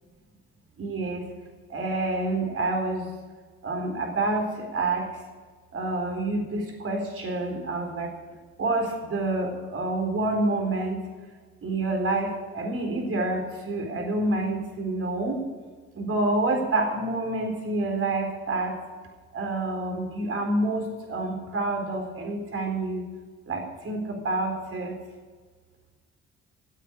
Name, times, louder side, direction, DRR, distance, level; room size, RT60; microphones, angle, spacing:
voice 1, 0.8-1.3 1.7-3.1 3.6-5.1 5.7-8.1 8.6-11.1 11.6-15.4 15.9-18.8 19.3-23.0 23.5-25.0, right 2 dB, 50° right, 3 dB, 4.1 m, -28 dB
16.0 x 8.3 x 8.5 m, 1.5 s
cardioid pair, 90°, 30 cm